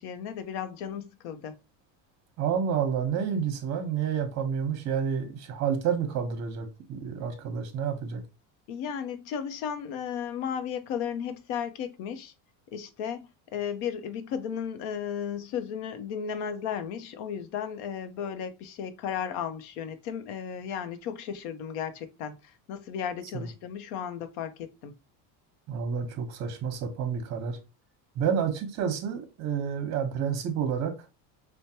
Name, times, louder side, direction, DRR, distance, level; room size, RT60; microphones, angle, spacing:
voice 1, 0.0-1.6 8.7-12.3 12.7-24.9, left 8 dB, 75° left, 0.7 m, -35 dB
voice 2, 2.4-8.2 23.3-23.5 25.7-27.6 28.2-30.9, right 7 dB, 40° right, 0.9 m, -29 dB
4.5 x 2.2 x 2.8 m
cardioid pair, 160°, 42 cm